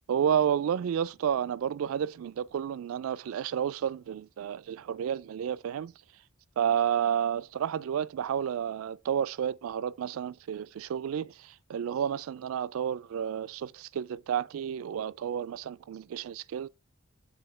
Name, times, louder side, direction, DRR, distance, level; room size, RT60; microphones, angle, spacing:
voice 1, 0.1-5.9 6.6-16.7, right 8 dB, 75° right, 0.3 m, -31 dB
7.7 x 2.8 x 5.4 m
head